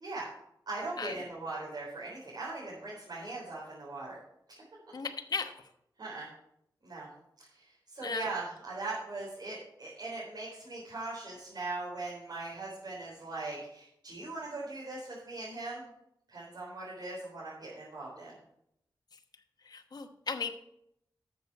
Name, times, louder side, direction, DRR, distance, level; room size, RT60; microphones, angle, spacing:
voice 1, 0.0-0.3 0.7-4.2 6.0-6.3 6.8-7.1 7.4-15.9 16.3-18.4, right 3 dB, 60° right, -6 dB, 4.1 m, -40 dB
voice 2, 4.9-5.5 8.0-8.3 19.7-20.5, left 5 dB, 60° left, 6 dB, 1.1 m, -35 dB
13.0 x 7.0 x 4.7 m, 0.76 s
wide cardioid pair, 95°, 8 cm